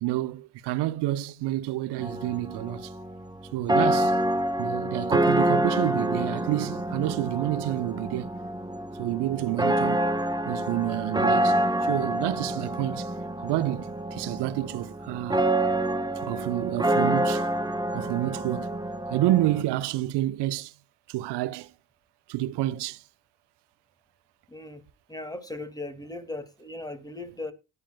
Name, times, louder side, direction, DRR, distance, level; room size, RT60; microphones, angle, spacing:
voice 1, 0.0-2.9 3.5-4.2 4.6-8.3 9.0-10.1 10.5-13.1 13.4-15.5 16.2-17.5 17.9-18.8 19.1-20.7 21.1-21.7 22.3-23.0, right 15 dB, 60° right, 0.9 m, -29 dB
sound 1, 2.0-19.6, right 1 dB, 10° right, 1.2 m, -27 dB
voice 2, 24.5-24.8 25.1-27.5, left 2 dB, 10° left, 2.2 m, -38 dB
17.5 x 9.9 x 2.3 m
hypercardioid pair, 45°, 46 cm